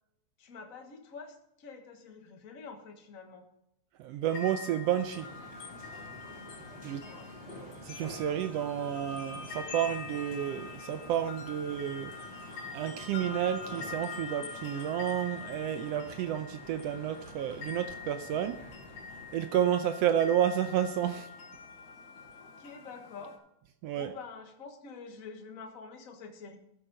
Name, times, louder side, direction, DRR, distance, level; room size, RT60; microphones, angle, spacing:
voice 1, 0.4-3.5 6.8-7.3 22.4-23.3 23.9-26.6, left 5 dB, 45° left, 1.1 m, -47 dB
voice 2, 4.0-5.2 6.8-7.0 7.8-12.1 12.7-18.6 19.3-21.3 23.8-24.1, right 10 dB, 80° right, 1.5 m, -31 dB
sound 1, 4.3-23.4, left 4 dB, 85° left, 2.8 m, -45 dB
sound 2, 5.0-19.4, equal, 20° right, 4.4 m, -49 dB
14.0 x 8.2 x 3.9 m
omnidirectional pair, 3.4 m